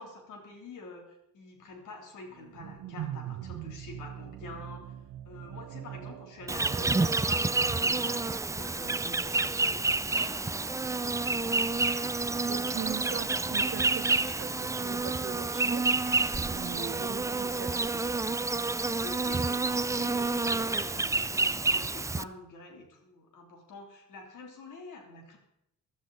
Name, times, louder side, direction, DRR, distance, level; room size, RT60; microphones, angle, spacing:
voice 1, 0.0-5.0 5.2-10.7 10.9-11.8 18.8-25.4, left 3 dB, 80° left, 3.2 m, -47 dB
sound 1, 2.3-8.6, right 12 dB, 70° right, 0.8 m, -43 dB
Insect, 6.5-22.2, right 3 dB, 10° right, 0.4 m, -29 dB
sound 2, 8.4-16.6, left 1 dB, 50° left, 6.7 m, -54 dB
voice 2, 12.5-15.9 16.5-18.2, right 8 dB, 45° right, 1.0 m, -41 dB
15.0 x 12.5 x 4.0 m
cardioid pair, 90°, 30 cm